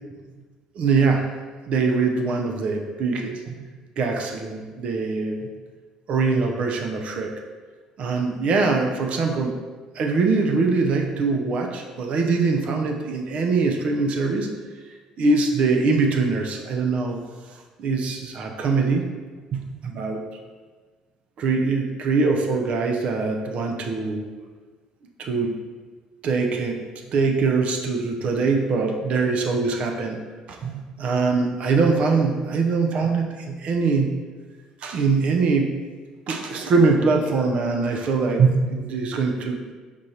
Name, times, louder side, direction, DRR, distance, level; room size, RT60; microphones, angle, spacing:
voice 1, 0.7-1.3 1.7-3.6 4.0-5.5 6.1-7.4 8.0-9.6 9.9-14.5 15.2-17.2 17.8-19.1 19.5-20.2 21.4-24.3 25.2-25.5 26.2-26.8 27.1-30.2 30.5-34.2 34.8-35.7 36.3-39.7, right 4 dB, 55° right, 2 dB, 0.5 m, -22 dB
5.1 x 3.2 x 2.8 m, 1.4 s
supercardioid pair, 70°, 2 cm